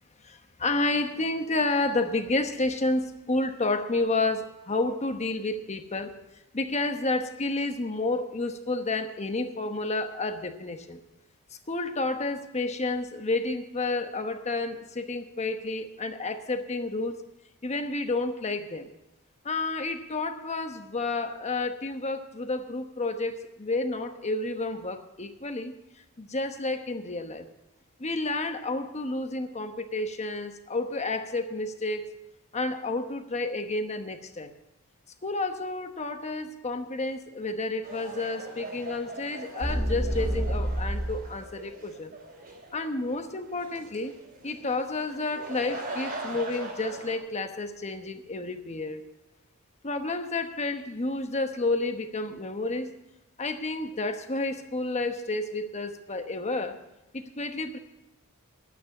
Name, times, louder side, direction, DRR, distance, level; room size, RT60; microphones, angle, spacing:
voice 1, 0.2-6.1 6.5-11.0 11.7-17.2 17.6-18.9 19.4-25.8 26.2-27.5 28.0-32.1 32.5-34.5 35.2-42.1 42.7-44.1 44.4-49.0 49.8-52.9 53.4-56.8 57.1-57.8, left 2 dB, 30° left, 7 dB, 1.0 m, -30 dB
sound 1, 37.8-47.2, right 2 dB, 45° right, 3.2 m, -41 dB
sound 2, 39.6-41.3, equal, 30° right, 2.2 m, -28 dB
11.5 x 9.4 x 7.2 m, 0.97 s
head